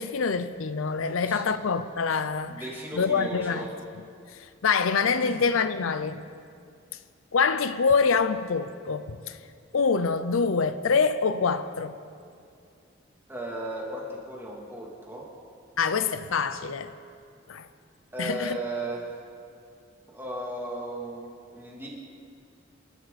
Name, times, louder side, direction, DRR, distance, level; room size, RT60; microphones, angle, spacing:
voice 1, 0.0-2.6 2.9-3.6 4.3-6.2 7.3-9.4 9.7-12.0 15.8-16.9 17.5-17.7 18.2-18.6, left 5 dB, 85° left, 0.6 m, -25 dB
voice 2, 1.0-1.4 2.5-3.7 5.2-5.4 13.3-15.3 18.1-19.1 20.1-21.9, right 1 dB, 10° right, 2.9 m, -36 dB
27.0 x 12.5 x 4.2 m
head